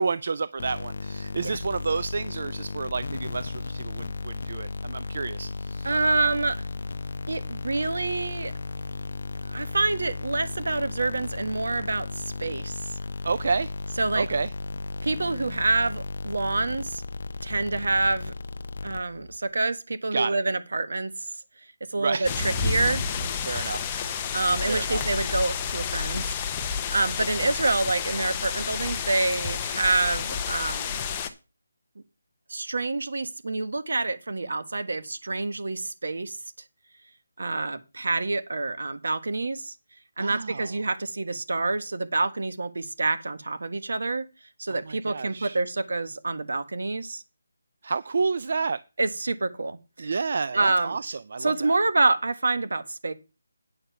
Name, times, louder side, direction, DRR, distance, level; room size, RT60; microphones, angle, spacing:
voice 1, 0.0-5.9 13.2-13.7 14.1-14.5 20.1-20.4 22.0-22.4 23.4-23.9 24.6-25.1 40.2-40.7 44.9-45.6 47.8-48.8 50.0-51.8, right 4 dB, 50° right, 0.4 m, -30 dB
sound 1, 0.6-19.4, left 3 dB, 55° left, 0.7 m, -35 dB
voice 2, 5.8-6.6 7.3-8.5 9.5-13.0 14.0-14.3 15.0-17.0 17.4-18.3 18.8-21.3 21.9-23.0 24.3-26.3 26.6-31.0 32.5-36.4 37.4-39.7 40.2-44.2 44.6-47.2 49.0-50.1 50.5-50.9 51.4-53.1, right 3 dB, 70° right, 1.5 m, -27 dB
sound 2, 22.2-31.3, left 6 dB, 15° left, 0.8 m, -30 dB
9.2 x 6.6 x 5.8 m
figure-of-eight pair, 170°, 0 cm